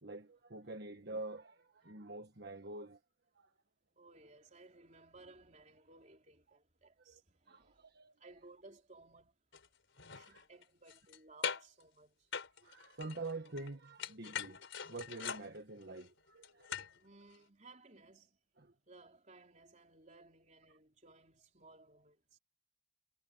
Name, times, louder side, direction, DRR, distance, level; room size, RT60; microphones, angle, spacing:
voice 1, 0.0-3.0 3.4-3.5 7.1-7.2 7.5-8.1 10.2-10.4 12.6-16.9 18.6-18.7, right 2 dB, 55° right, 1.4 m, -47 dB
voice 2, 4.0-7.9 8.2-9.4 10.1-12.3 17.0-18.4 18.9-22.4, right 3 dB, 35° right, 3.8 m, -60 dB
sound 1, 9.5-9.7 10.0-11.2 11.4-11.8 12.3-13.7 14.0-17.0 17.3-17.4, left 7 dB, 70° left, 4.3 m, -42 dB
head